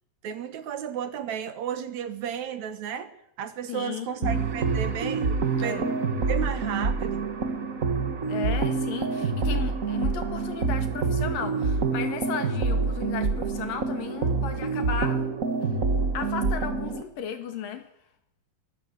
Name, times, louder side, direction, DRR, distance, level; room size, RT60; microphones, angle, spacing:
voice 1, 0.2-6.0 6.3-7.3, right 8 dB, 65° right, 11 dB, 2.3 m, -33 dB
voice 2, 3.7-4.4 5.6-5.9 8.3-15.2 16.1-17.9, left 8 dB, 85° left, 7 dB, 3.6 m, -35 dB
sound 1, 4.2-17.0, right 4 dB, 40° right, 1.3 m, -27 dB
22.5 x 14.5 x 8.1 m, 0.80 s
omnidirectional pair, 3.8 m